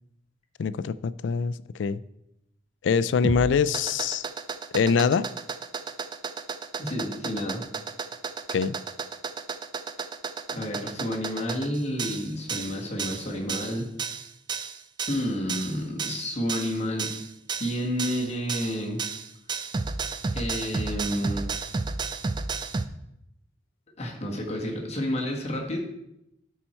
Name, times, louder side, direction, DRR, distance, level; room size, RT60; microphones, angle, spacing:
voice 1, 0.6-2.0 2.8-4.2 4.7-5.3 8.5-8.8, left 5 dB, 70° left, 16 dB, 0.4 m, -24 dB
sound 1, 3.2-22.9, right 4 dB, 25° right, 0.4 m, -33 dB
voice 2, 6.8-7.6 10.5-13.9 15.1-17.1 17.6-19.0 20.3-21.5 24.0-25.8, equal, 35° left, 0 dB, 1.7 m, -30 dB
13.0 x 4.4 x 4.4 m, 0.82 s
head